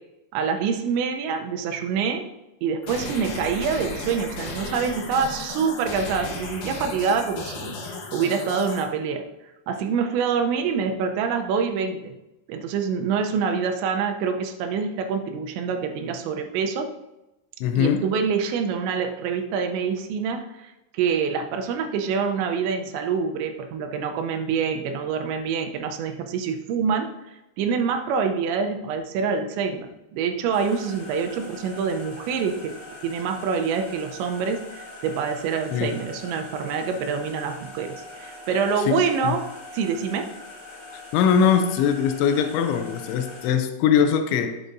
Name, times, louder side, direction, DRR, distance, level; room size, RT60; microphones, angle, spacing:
voice 1, 0.3-2.3 2.6-9.2 9.7-12.1 12.5-16.9 17.8-32.7 33.0-39.5 39.7-40.3, right 6 dB, 80° right, 5 dB, 3.0 m, -26 dB
sound 1, 2.8-8.8, left 2 dB, 60° left, 2.1 m, -34 dB
voice 2, 17.6-18.0 35.7-35.9 38.9-39.4 41.1-44.6, left 7 dB, 90° left, 8 dB, 3.1 m, -21 dB
sound 2, 30.5-43.5, left 2 dB, 30° left, 2.8 m, -42 dB
11.0 x 8.1 x 2.6 m, 0.96 s
omnidirectional pair, 5.3 m